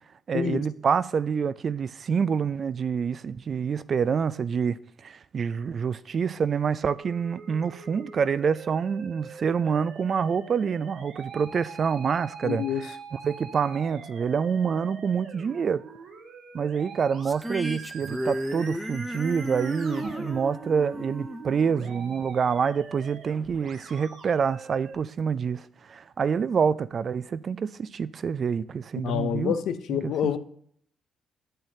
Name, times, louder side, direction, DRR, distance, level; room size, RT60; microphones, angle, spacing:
voice 1, 0.3-4.8 5.0-15.8 16.5-29.5 29.9-30.3, right 6 dB, 50° right, 0.3 m, -27 dB
Musical instrument, 7.0-25.0, right 4 dB, 75° right, 1.4 m, -44 dB
voice 2, 12.4-12.8 29.0-30.4, left 9 dB, 75° left, 0.6 m, -27 dB
sound 1, 17.2-22.6, equal, ahead, 0.5 m, -35 dB
8.8 x 7.4 x 2.7 m
cardioid pair, 90°, 0 cm